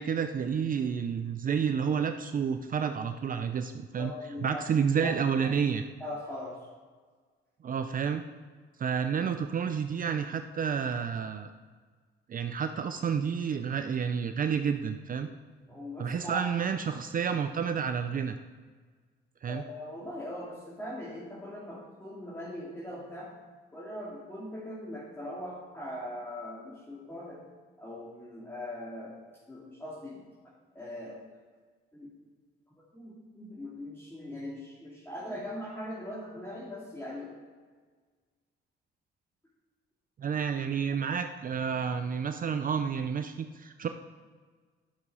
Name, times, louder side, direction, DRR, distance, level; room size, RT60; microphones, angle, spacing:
voice 1, 0.0-4.1 4.4-5.8 7.6-8.2 8.8-11.5 12.3-15.3 16.0-18.4 19.4-19.6 40.2-43.9, right 7 dB, 45° right, 8 dB, 0.6 m, -30 dB
voice 2, 3.9-4.7 5.0-5.5 6.0-6.6 15.6-16.5 19.5-23.3 23.7-27.4 27.8-29.1 29.5-30.2 30.7-31.2 31.9-32.1 32.9-37.3, left 1 dB, 10° left, -7 dB, 2.6 m, -40 dB
11.5 x 6.0 x 5.5 m, 1.5 s
cardioid pair, 90°, 20 cm